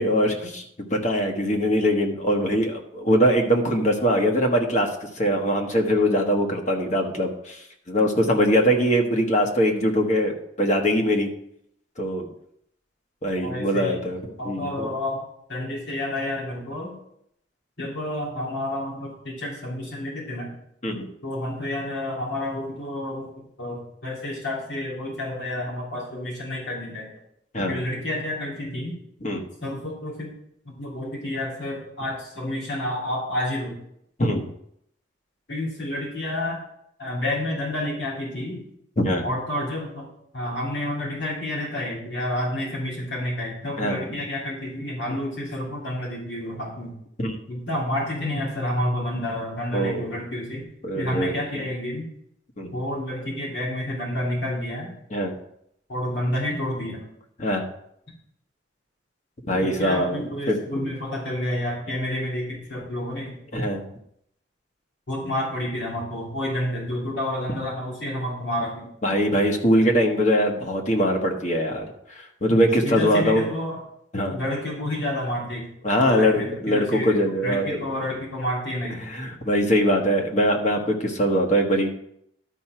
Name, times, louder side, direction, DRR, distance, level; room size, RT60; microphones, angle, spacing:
voice 1, 0.0-4.9 5.2-7.6 7.9-11.3 12.0-12.3 13.2-14.9 20.8-21.1 27.5-27.8 29.2-29.4 34.2-34.4 39.0-39.3 43.8-44.2 47.2-47.4 49.7-50.2 50.8-51.6 52.6-52.7 55.1-55.3 57.4-57.7 59.5-60.2 60.5-60.6 63.5-63.9 69.0-73.4 74.1-74.4 75.8-78.2 79.0-81.9, equal, 40° left, 2 dB, 1.3 m, -22 dB
voice 2, 13.4-14.0 14.4-15.2 15.5-16.9 17.8-20.5 21.2-27.1 27.7-28.9 29.6-30.3 30.6-33.8 35.5-36.6 37.0-38.6 39.2-40.1 40.3-46.9 47.5-50.6 50.9-52.1 52.7-54.9 55.9-57.0 59.6-63.4 65.1-68.9 72.8-73.8 74.3-75.7 76.0-79.0, left 1 dB, 80° left, -5 dB, 3.2 m, -29 dB
11.5 x 4.4 x 5.9 m, 0.74 s
head